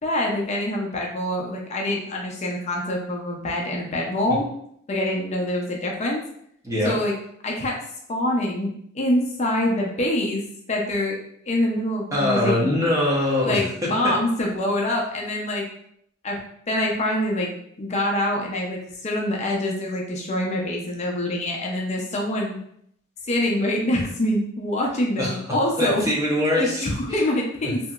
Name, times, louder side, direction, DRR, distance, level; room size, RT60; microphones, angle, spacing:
voice 1, 0.0-4.5 4.9-6.2 6.8-7.1 7.4-7.8 8.1-10.4 10.7-11.2 11.5-12.7 13.5-15.6 16.2-16.4 16.7-17.5 17.8-22.6 23.3-26.0 26.6-27.8, left 1 dB, 35° left, -1 dB, 0.5 m, -25 dB
voice 2, 6.6-7.0 12.1-14.1 25.2-27.2 27.6-27.7, left 1 dB, 15° right, -4 dB, 0.7 m, -23 dB
2.9 x 2.6 x 2.3 m, 0.70 s
head